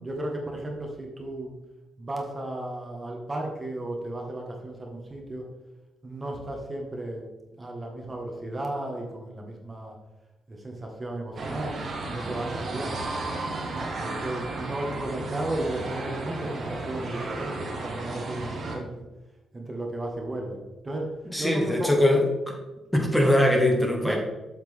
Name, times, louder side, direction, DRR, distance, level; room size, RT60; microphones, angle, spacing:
voice 1, 0.0-1.5 2.0-5.4 6.0-7.2 7.6-10.0 10.5-11.8 12.1-13.1 13.8-18.9 19.5-20.6 20.8-21.1 21.4-21.9 24.0-24.2, right 1 dB, 30° right, 1 dB, 1.8 m, -34 dB
sound 1, 11.4-18.8, right 2 dB, 60° right, 1.5 m, -34 dB
voice 2, 21.3-22.3 22.9-24.2, left 1 dB, 5° left, 0 dB, 1.8 m, -21 dB
7.9 x 5.8 x 3.7 m, 1.1 s
hypercardioid pair, 45°, 0 cm